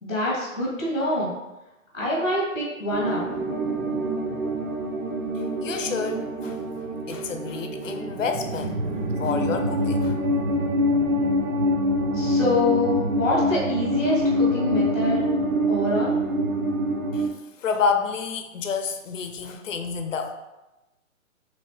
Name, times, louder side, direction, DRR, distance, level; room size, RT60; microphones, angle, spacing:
voice 1, 0.0-1.3 1.9-3.2 12.1-15.2 15.7-16.1, left 1 dB, 5° right, -22 dB, 0.4 m, -25 dB
sound 1, 2.9-17.3, equal, 75° right, 0.9 m, -25 dB
voice 2, 5.6-6.6 7.1-8.9 9.2-10.2 17.1-17.3 17.6-20.3, left 5 dB, 70° left, 6 dB, 0.7 m, -29 dB
3.2 x 3.1 x 4.2 m, 1.0 s
hypercardioid pair, 155°, 40 cm